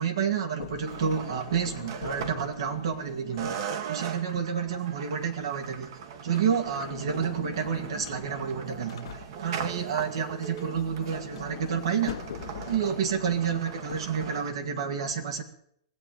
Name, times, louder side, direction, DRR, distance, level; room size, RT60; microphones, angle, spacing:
voice 1, 0.0-3.6 3.9-5.9 6.2-12.2 12.7-15.4, right 7 dB, 80° right, 5 dB, 2.1 m, -29 dB
Sliding door, 0.6-4.1 6.2-9.7 10.3-14.7, left 9 dB, 85° left, 1.4 m, -43 dB
sound 1, 0.9-3.0 3.4-14.5, right 7 dB, 60° right, 1.5 m, -39 dB
19.5 x 7.9 x 8.8 m, 0.70 s
hypercardioid pair, 145°, 3 cm